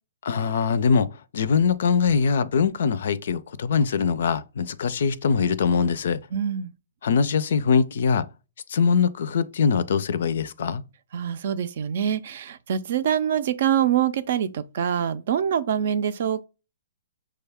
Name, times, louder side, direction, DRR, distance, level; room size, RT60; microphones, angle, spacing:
voice 1, 0.2-6.2 7.0-8.3 8.7-10.8, left 5 dB, 65° left, 0.4 m, -22 dB
voice 2, 6.3-6.7 11.1-16.5, right 9 dB, 60° right, 0.5 m, -25 dB
6.3 x 2.3 x 3.4 m
hypercardioid pair, 140°, 0 cm